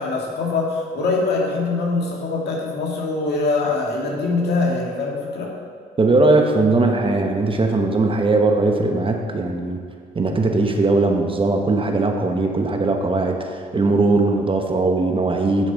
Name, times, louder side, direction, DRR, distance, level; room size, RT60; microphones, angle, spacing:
voice 1, 0.0-5.5, left 3 dB, 65° left, -2 dB, 1.9 m, -23 dB
voice 2, 6.0-9.8 10.1-15.7, right 3 dB, 30° right, 3 dB, 1.0 m, -19 dB
10.0 x 5.2 x 4.0 m, 2.1 s
supercardioid pair, 65°, 18 cm